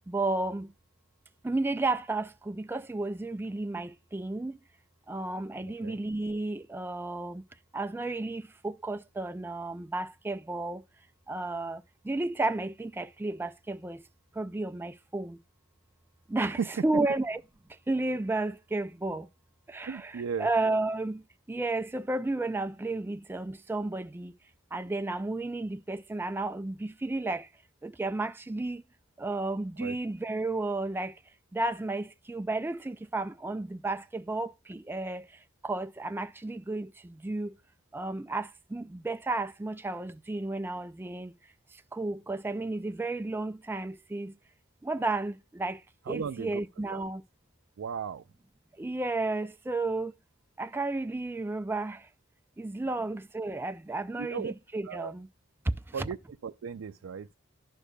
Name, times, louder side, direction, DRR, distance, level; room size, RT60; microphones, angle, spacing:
voice 1, 0.1-0.7 1.4-4.6 5.1-7.4 7.7-10.8 11.3-14.0 14.3-15.4 16.3-17.4 17.9-19.3 19.7-24.3 24.7-27.5 27.8-28.8 29.2-31.2 31.5-37.6 37.9-41.3 41.7-44.4 44.8-47.2 48.8-50.1 50.6-52.1 52.6-55.3 55.6-56.1, right 2 dB, 10° right, 0.3 m, -32 dB
voice 2, 5.6-6.0 16.4-16.7 19.9-20.5 29.8-30.0 46.1-47.0 47.8-48.2 53.0-53.1 54.2-54.5 54.8-55.1 55.9-56.2 56.4-57.3, right 6 dB, 85° right, 0.4 m, -36 dB
11.0 x 6.6 x 2.2 m
head